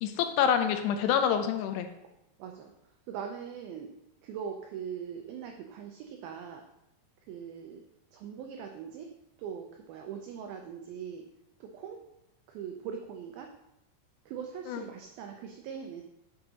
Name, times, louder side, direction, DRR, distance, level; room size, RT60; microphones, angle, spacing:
voice 1, 0.0-1.9 14.7-14.8, left 8 dB, 80° left, 8 dB, 2.6 m, -27 dB
voice 2, 2.4-2.7 3.1-3.9 4.2-6.6 7.3-7.8 8.1-9.1 9.4-11.2 11.6-12.0 12.5-13.5 14.3-16.0, right 7 dB, 90° right, 3 dB, 2.1 m, -41 dB
7.8 x 6.6 x 2.8 m, 0.86 s
omnidirectional pair, 4.9 m